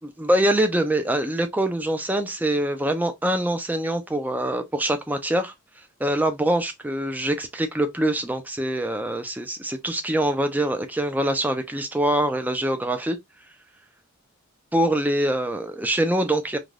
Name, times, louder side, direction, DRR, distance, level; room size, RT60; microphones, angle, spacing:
voice 1, 0.0-5.5 6.0-13.2 14.7-16.6, right 1 dB, 5° right, 0.4 m, -24 dB
2.5 x 2.2 x 3.2 m
head